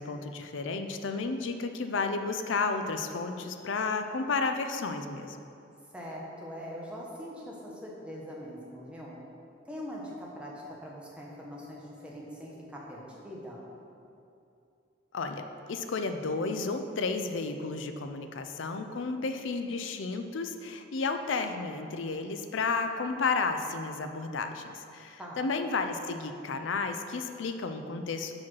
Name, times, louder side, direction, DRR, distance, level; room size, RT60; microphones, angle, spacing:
voice 1, 0.0-5.4 15.1-28.3, left 4 dB, 75° left, 7 dB, 0.5 m, -32 dB
voice 2, 5.9-9.2 9.7-13.6 25.2-25.4, equal, 5° right, -4 dB, 0.9 m, -42 dB
5.7 x 4.9 x 6.1 m, 2.7 s
head